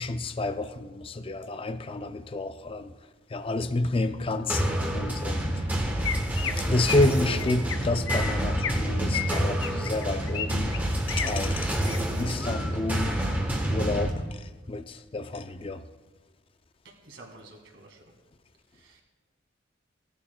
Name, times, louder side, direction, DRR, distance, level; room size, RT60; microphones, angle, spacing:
voice 1, 0.0-2.9 3.3-4.7 4.9-5.7 6.6-10.7 11.1-13.2 13.7-15.8, left 2 dB, 25° left, 0.4 m, -30 dB
sound 1, 4.5-14.1, right 1 dB, 10° right, 1.0 m, -28 dB
Chirp tweet, 6.0-6.5 6.8-7.1 7.4-7.8 8.1-8.8 9.1-10.5 10.7-11.3 11.7-12.0 12.4-12.8, left 7 dB, 75° left, 0.7 m, -33 dB
voice 2, 17.0-18.0 18.7-19.0, right 2 dB, 60° right, 2.0 m, -50 dB
18.0 x 11.5 x 2.2 m
head